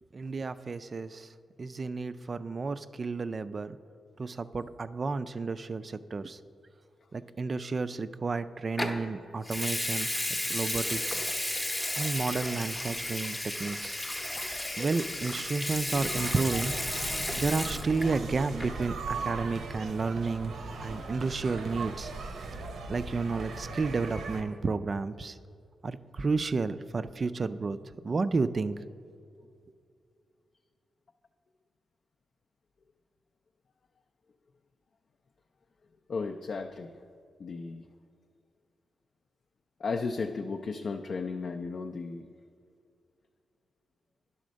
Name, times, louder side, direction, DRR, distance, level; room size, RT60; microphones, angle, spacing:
voice 1, 0.1-1.3 1.6-3.8 4.2-6.4 7.1-10.1 10.5-11.2 12.0-14.0 14.8-16.7 17.4-20.5 20.8-22.1 22.9-25.4 25.8-27.8 28.0-28.8, right 4 dB, 40° right, 12 dB, 0.3 m, -31 dB
Water tap faucet / Sink (filling or washing) / Liquid, 8.8-9.0 9.4-18.2 18.5-18.8, left 1 dB, 10° left, 0.7 m, -33 dB
sound 1, 15.9-24.4, right 3 dB, 80° right, 0.7 m, -38 dB
voice 2, 36.1-36.9 37.4-37.9 39.8-42.3, left 4 dB, 55° left, 4 dB, 0.3 m, -34 dB
10.5 x 4.2 x 6.2 m, 2.4 s
wide cardioid pair, 110°, 0 cm